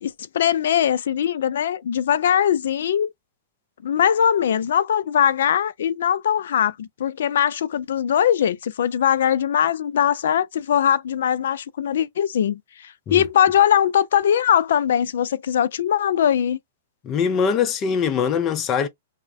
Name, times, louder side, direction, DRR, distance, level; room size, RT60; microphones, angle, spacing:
voice 1, 0.0-3.1 3.8-16.6, left 9 dB, 70° left, 0.3 m, -21 dB
voice 2, 17.0-18.9, left 6 dB, 30° left, 0.6 m, -22 dB
2.4 x 2.1 x 3.3 m
hypercardioid pair, 130°, 0 cm